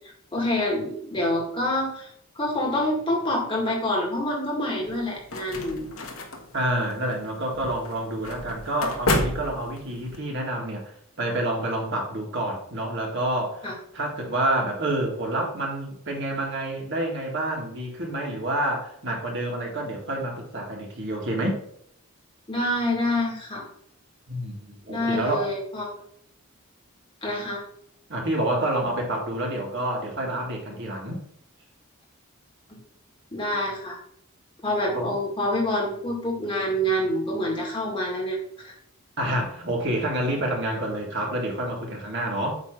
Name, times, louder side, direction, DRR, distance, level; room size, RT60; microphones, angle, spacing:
voice 1, 0.3-2.1 2.4-5.9 13.6-13.7 22.5-23.7 24.9-25.9 27.2-27.6 32.7-32.8 33.3-34.0 34.6-38.7, left 1 dB, 20° left, -2 dB, 1.9 m, -27 dB
sound 1, 4.8-10.2, left 2 dB, 70° left, 1.2 m, -31 dB
voice 2, 6.5-13.7 13.9-21.6 24.3-25.5 28.1-31.2 34.9-35.1 39.2-42.6, right 1 dB, 55° right, 0 dB, 1.7 m, -28 dB
8.1 x 3.2 x 6.0 m, 0.68 s
head